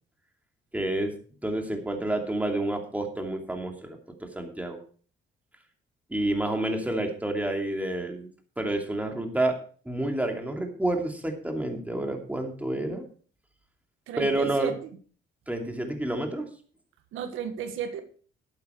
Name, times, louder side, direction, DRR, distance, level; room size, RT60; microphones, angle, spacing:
voice 1, 0.7-1.1 1.4-4.8 6.1-8.3 8.6-9.6 9.8-13.0 14.2-14.7 15.5-16.5, right 1 dB, 5° right, 3 dB, 2.8 m, -29 dB
voice 2, 14.1-14.7 17.1-18.0, right 8 dB, 90° right, 8 dB, 1.5 m, -33 dB
11.5 x 9.0 x 4.6 m, 0.42 s
cardioid pair, 90°, 20 cm